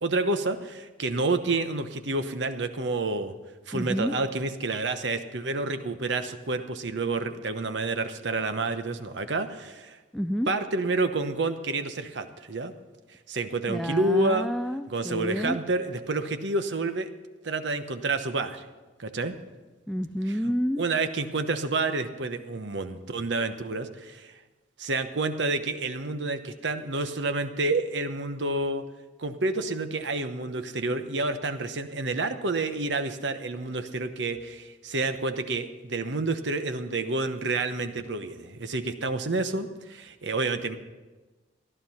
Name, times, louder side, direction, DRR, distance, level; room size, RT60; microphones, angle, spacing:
voice 1, 0.0-3.3 3.7-10.0 10.5-12.7 13.3-14.5 14.9-17.1 17.4-18.6 19.0-19.3 20.8-24.4 24.8-28.8 29.2-40.8, right 3 dB, 80° right, 8 dB, 1.0 m, -29 dB
voice 2, 3.7-4.2 10.1-10.5 13.7-15.6 19.9-20.8, equal, ahead, 9 dB, 0.3 m, -29 dB
14.5 x 11.0 x 5.7 m, 1.2 s
head